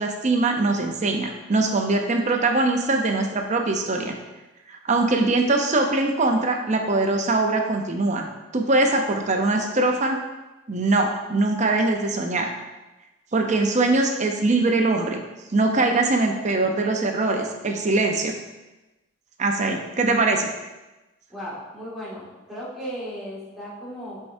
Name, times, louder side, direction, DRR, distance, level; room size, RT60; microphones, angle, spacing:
voice 1, 0.0-4.1 4.7-10.2 10.7-12.5 13.3-15.2 15.5-18.3 19.4-20.5, right 2 dB, 35° right, 3 dB, 0.7 m, -22 dB
voice 2, 21.3-24.2, equal, ahead, -10 dB, 2.1 m, -36 dB
9.9 x 4.7 x 2.7 m, 1.1 s
head